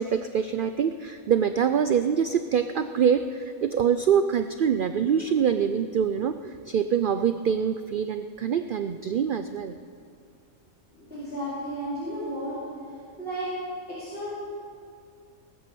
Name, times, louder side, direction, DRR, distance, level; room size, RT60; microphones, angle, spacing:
voice 1, 0.0-9.7, right 7 dB, 80° right, 10 dB, 0.4 m, -25 dB
voice 2, 10.9-12.6 13.2-13.5 14.0-14.3, right 1 dB, 40° left, -13 dB, 4.6 m, -33 dB
19.5 x 8.6 x 6.9 m, 2.2 s
omnidirectional pair, 1.4 m